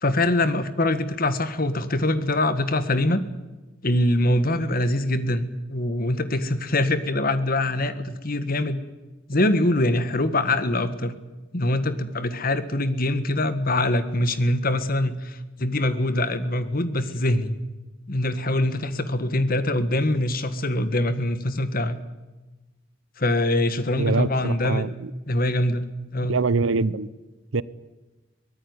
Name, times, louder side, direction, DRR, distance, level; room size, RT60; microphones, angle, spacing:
voice 1, 0.0-3.2 3.8-8.8 9.3-11.1 11.5-17.5 18.1-22.0 23.2-24.9 25.3-26.4, left 1 dB, 45° left, 12 dB, 1.6 m, -23 dB
voice 2, 24.0-25.1 26.3-27.1 27.5-27.6, right 3 dB, 80° right, 19 dB, 0.8 m, -24 dB
23.5 x 18.0 x 9.7 m, 1.2 s
head